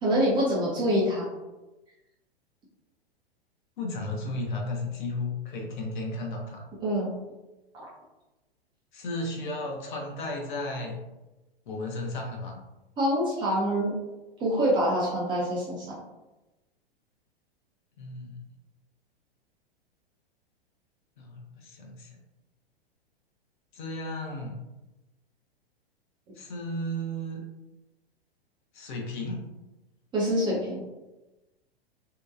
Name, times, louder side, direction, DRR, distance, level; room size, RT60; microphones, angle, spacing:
voice 1, 0.0-1.3 6.8-7.2 7.7-7.9 13.0-13.9 14.4-15.9 30.1-30.8, equal, 15° right, -6 dB, 0.4 m, -25 dB
voice 2, 3.8-6.6 8.9-11.0 11.7-12.6 18.0-18.4 21.2-22.1 23.7-24.6 26.4-27.4 28.7-29.4, left 1 dB, 50° left, -1 dB, 0.7 m, -34 dB
2.7 x 2.2 x 2.4 m, 1.1 s
figure-of-eight pair, 105°, 31 cm